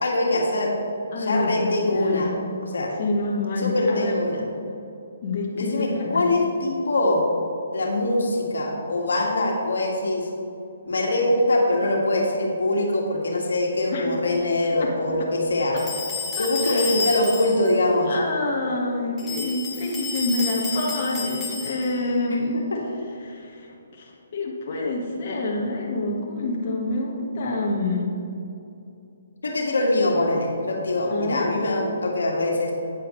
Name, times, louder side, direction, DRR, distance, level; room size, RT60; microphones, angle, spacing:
voice 1, 0.0-0.7 1.2-2.3 2.6-2.9 3.6-4.4 5.5-7.2 7.7-10.3 10.9-15.8 16.4-18.2 22.3-22.8 29.4-32.7, left 1 dB, 85° left, -1 dB, 1.8 m, -23 dB
voice 2, 1.1-2.3 3.0-4.1 5.2-6.2 13.9-14.1 14.8-14.9 16.4-16.9 18.1-22.6 23.2-28.1 31.1-31.5, left 2 dB, 45° left, -2 dB, 1.5 m, -27 dB
sound 1, 15.8-17.7 19.2-22.1, left 4 dB, 15° left, 1.9 m, -31 dB
9.3 x 9.2 x 3.2 m, 2.7 s
hypercardioid pair, 155°, 0 cm